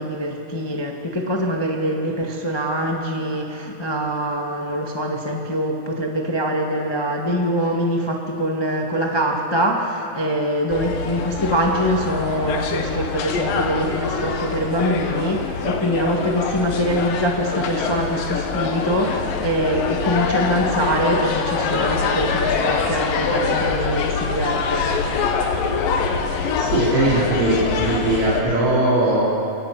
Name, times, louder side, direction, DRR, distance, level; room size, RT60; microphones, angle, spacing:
voice 1, 0.0-24.9, equal, 35° left, 0 dB, 0.4 m, -23 dB
sound 1, 10.7-28.4, left 5 dB, 75° left, 3.0 m, -24 dB
voice 2, 26.5-29.4, right 1 dB, 55° right, -9 dB, 5.0 m, -20 dB
26.5 x 19.0 x 6.0 m, 2.9 s
omnidirectional pair, 4.0 m